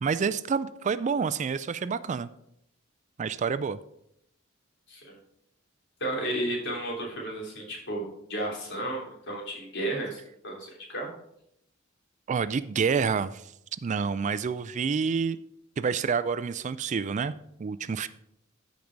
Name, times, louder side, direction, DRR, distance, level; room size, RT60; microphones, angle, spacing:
voice 1, 0.0-2.3 3.2-3.8 12.3-13.4 13.8-15.4 15.8-17.3 17.6-18.1, right 5 dB, 35° right, 15 dB, 0.3 m, -28 dB
voice 2, 6.0-11.1, right 1 dB, 60° left, -1 dB, 3.3 m, -33 dB
14.0 x 5.3 x 4.6 m, 0.76 s
head